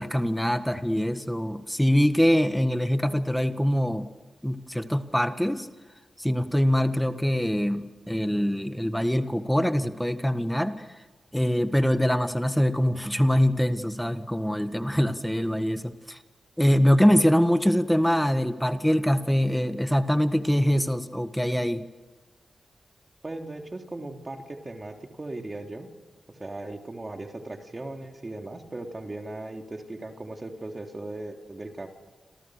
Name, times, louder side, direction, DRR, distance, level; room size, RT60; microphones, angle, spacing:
voice 1, 0.0-4.1 4.4-5.7 6.2-10.9 11.3-16.2 16.6-21.9, equal, 5° left, 8 dB, 1.6 m, -24 dB
voice 2, 23.2-25.9 26.3-31.9, right 2 dB, 30° right, 3 dB, 3.4 m, -38 dB
28.0 x 27.0 x 6.6 m, 1.3 s
cardioid pair, 75°, 0 cm